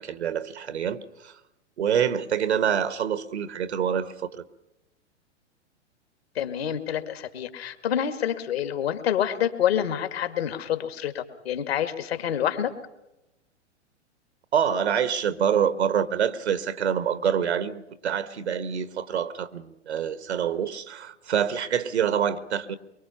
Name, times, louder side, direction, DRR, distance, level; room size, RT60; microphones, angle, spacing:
voice 1, 0.0-1.4 1.8-4.4 14.5-22.8, right 8 dB, 65° right, 1.3 m, -26 dB
voice 2, 6.4-12.7, left 10 dB, 55° left, 2.2 m, -27 dB
24.0 x 23.5 x 5.8 m
figure-of-eight pair, 100°, 36 cm